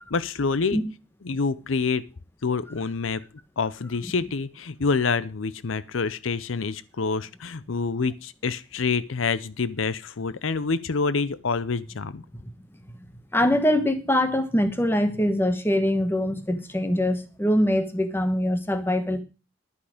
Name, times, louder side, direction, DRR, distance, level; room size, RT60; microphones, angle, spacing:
voice 1, 0.1-0.8 1.2-2.0 2.4-3.2 3.6-12.2, left 4 dB, 85° left, 0.7 m, -27 dB
voice 2, 13.3-19.2, left 1 dB, 10° left, 1.2 m, -23 dB
11.5 x 10.0 x 5.0 m
head